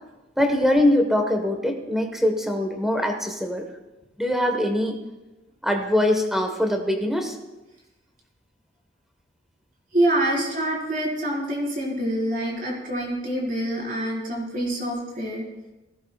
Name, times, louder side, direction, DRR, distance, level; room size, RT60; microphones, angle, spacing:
voice 1, 0.4-3.7 4.2-5.0 5.6-7.3, left 1 dB, ahead, 3 dB, 1.4 m, -22 dB
voice 2, 9.9-15.5, right 1 dB, 45° right, -3 dB, 4.8 m, -26 dB
19.0 x 17.0 x 2.4 m, 1.1 s
head